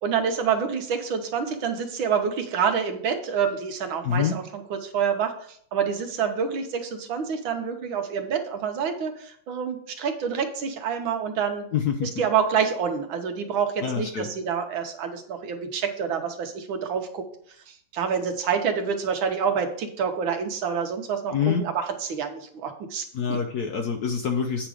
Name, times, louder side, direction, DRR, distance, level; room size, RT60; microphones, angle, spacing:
voice 1, 0.0-11.7 12.0-17.3 17.7-23.4, right 7 dB, 70° right, 6 dB, 1.7 m, -27 dB
voice 2, 4.0-4.3 11.7-12.1 13.8-14.3 21.3-21.7 23.1-24.7, left 7 dB, 65° left, 4 dB, 1.0 m, -26 dB
8.9 x 5.1 x 4.9 m, 0.63 s
omnidirectional pair, 2.3 m